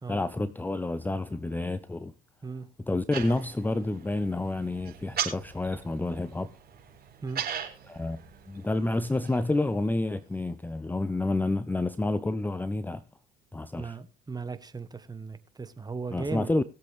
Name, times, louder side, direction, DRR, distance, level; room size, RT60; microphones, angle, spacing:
voice 1, 0.1-2.1 2.9-6.5 7.8-13.0 13.5-14.0 16.1-16.6, left 2 dB, 10° left, 0.6 m, -29 dB
sound 1, 3.1-10.3, right 9 dB, 45° right, 4.3 m, -39 dB
voice 2, 13.8-16.5, right 4 dB, 20° right, 1.3 m, -37 dB
20.5 x 7.6 x 3.4 m
hypercardioid pair, 65°, 21 cm